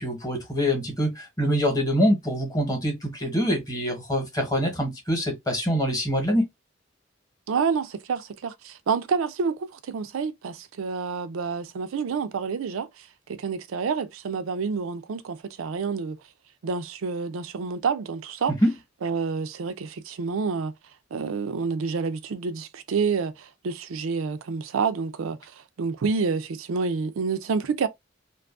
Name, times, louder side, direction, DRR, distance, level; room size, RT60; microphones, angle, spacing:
voice 1, 0.0-6.5 18.5-18.7, equal, 20° left, 0.9 m, -25 dB
voice 2, 7.5-16.2 16.6-18.5 19.0-20.7 21.1-27.9, right 5 dB, 90° right, 0.4 m, -28 dB
2.6 x 2.3 x 2.4 m
head